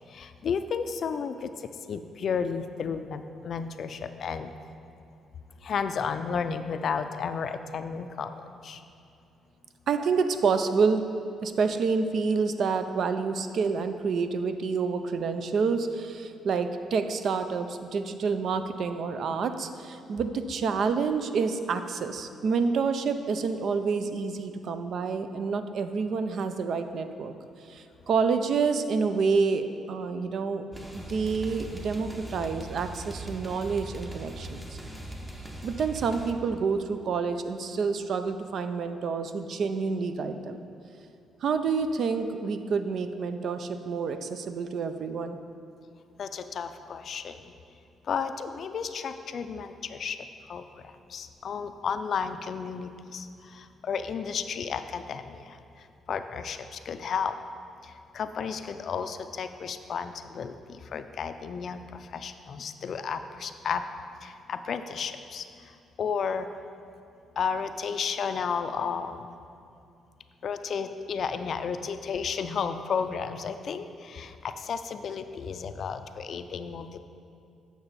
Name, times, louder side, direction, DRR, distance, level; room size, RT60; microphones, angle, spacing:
voice 1, 0.1-4.5 5.6-8.4 8.6-8.8 46.2-47.5 48.1-50.2 50.5-55.6 56.1-57.3 57.8-63.8 64.2-65.5 66.0-66.5 67.4-69.4 70.4-77.0, left 6 dB, 60° left, 9 dB, 0.4 m, -33 dB
voice 2, 9.9-11.1 11.4-27.3 27.7-34.8 35.6-40.7 41.4-45.4, right 5 dB, 60° right, 9 dB, 0.4 m, -28 dB
sound 1, 30.7-36.3, right 1 dB, 15° right, 0.8 m, -40 dB
8.5 x 5.9 x 4.1 m, 2.5 s
cardioid pair, 90°, 0 cm